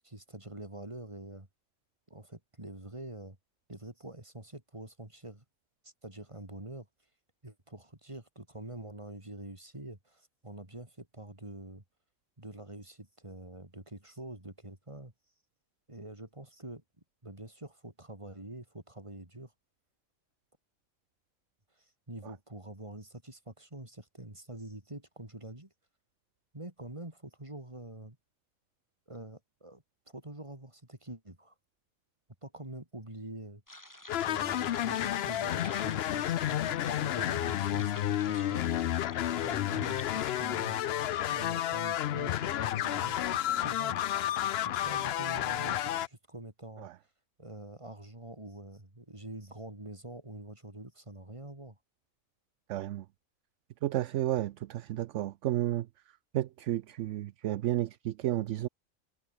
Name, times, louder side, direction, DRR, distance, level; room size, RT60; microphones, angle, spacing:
voice 1, 0.0-1.5 2.1-3.4 3.7-5.4 5.8-6.9 7.4-11.8 12.4-15.1 15.9-16.8 17.2-19.5 21.8-25.7 26.5-28.2 29.1-31.5 32.4-33.6 34.2-38.7 39.4-40.8 41.3-44.0 44.6-46.9 47.4-51.8, right 1 dB, 20° right, 3.6 m, -46 dB
sound 1, 33.7-40.3, left 1 dB, 15° left, 3.8 m, -51 dB
sound 2, 34.1-46.1, left 12 dB, 60° left, 0.7 m, -31 dB
voice 2, 52.7-53.0 53.8-55.9 56.3-58.7, right 14 dB, 70° right, 0.8 m, -32 dB
omnidirectional pair, 1.4 m